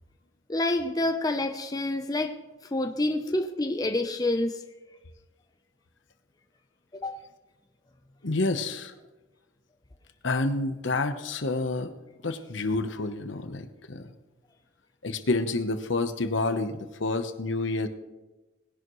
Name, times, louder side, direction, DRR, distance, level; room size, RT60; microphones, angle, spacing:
voice 1, 0.5-2.4 2.7-4.6 6.9-7.3, left 2 dB, 20° left, 0.6 m, -28 dB
voice 2, 8.2-8.9 10.2-11.9 12.2-14.1 15.0-17.9, left 2 dB, 70° left, 1.0 m, -28 dB
20.0 x 11.0 x 3.1 m
head